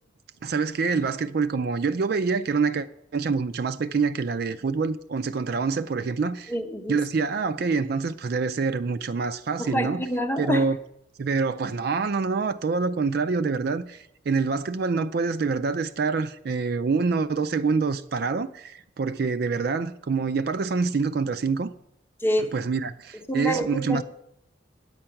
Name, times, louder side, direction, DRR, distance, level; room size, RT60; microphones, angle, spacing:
voice 1, 0.4-2.9 3.1-6.5 6.9-10.0 10.4-10.8 11.2-21.7 22.5-24.0, right 4 dB, 50° right, 0.4 m, -26 dB
voice 2, 6.5-7.0 9.6-10.7 22.2-22.5 23.3-24.0, equal, 10° left, 0.7 m, -27 dB
8.9 x 8.6 x 5.8 m
head